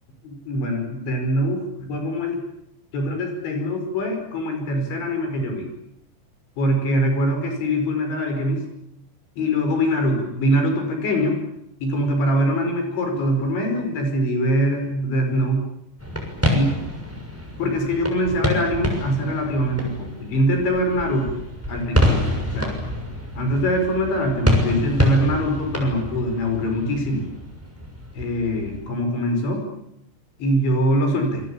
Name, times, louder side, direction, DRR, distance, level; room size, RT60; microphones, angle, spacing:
voice 1, 0.2-2.4 2.9-5.7 6.6-8.6 9.4-11.4 11.8-15.6 16.5-16.7 17.6-21.4 21.7-22.8 23.4-27.2 28.1-29.7 30.4-31.4, equal, 90° left, 5 dB, 7.7 m, -23 dB
sound 1, 16.0-28.9, left 1 dB, 5° right, 6.2 m, -27 dB
27.5 x 23.0 x 8.8 m, 0.80 s
omnidirectional pair, 5.1 m